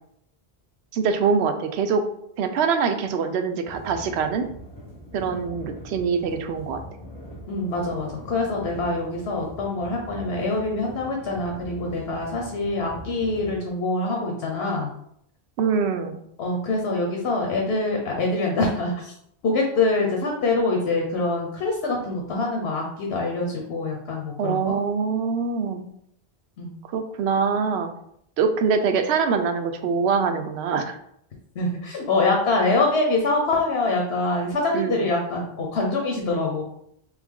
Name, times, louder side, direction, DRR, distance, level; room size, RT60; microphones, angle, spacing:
voice 1, 0.9-2.0 2.4-4.5 5.1-6.8 15.6-16.2 24.4-25.8 26.9-27.9 28.4-31.0 34.7-35.1, right 5 dB, 85° right, 7 dB, 0.8 m, -24 dB
sound 1, 3.7-13.6, equal, 20° left, 0.9 m, -42 dB
voice 2, 7.5-14.9 16.4-19.1 19.4-24.7 26.6-26.7 31.5-36.6, left 2 dB, 85° left, 1 dB, 1.0 m, -25 dB
3.4 x 3.3 x 3.6 m, 0.72 s
omnidirectional pair, 1.1 m